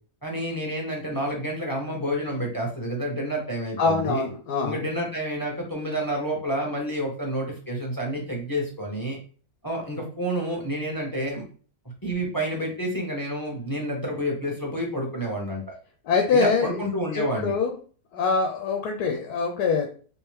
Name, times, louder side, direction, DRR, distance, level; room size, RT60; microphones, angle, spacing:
voice 1, 0.2-4.3 4.6-9.2 9.6-11.4 12.0-15.7 16.3-17.5, equal, 20° left, -1 dB, 0.6 m, -29 dB
voice 2, 3.8-4.8 16.1-16.7 17.1-17.7 18.1-19.9, left 4 dB, 85° left, 3 dB, 1.2 m, -24 dB
3.5 x 2.8 x 3.1 m, 0.41 s
omnidirectional pair, 1.7 m